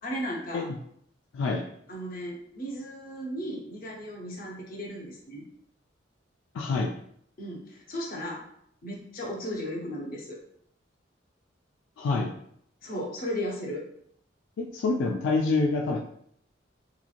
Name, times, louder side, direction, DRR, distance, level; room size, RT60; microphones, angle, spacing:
voice 1, 0.0-0.7 1.9-5.4 7.4-8.4 8.8-10.4 12.8-13.8, equal, 50° left, -2 dB, 0.7 m, -35 dB
voice 2, 6.5-6.9 12.0-12.3 14.6-16.0, left 3 dB, 85° left, 1 dB, 0.3 m, -26 dB
3.0 x 2.4 x 2.4 m, 0.67 s
head